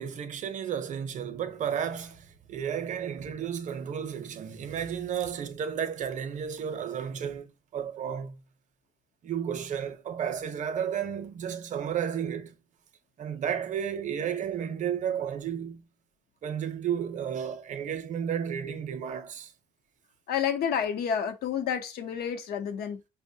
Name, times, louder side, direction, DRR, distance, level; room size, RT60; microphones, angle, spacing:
voice 1, 0.0-8.4 9.2-12.5 13.2-15.9 16.4-19.5, right 8 dB, 45° right, 0.6 m, -32 dB
voice 2, 20.3-23.0, left 8 dB, 70° left, 0.8 m, -29 dB
5.3 x 2.1 x 2.7 m
cardioid pair, 110°, 17 cm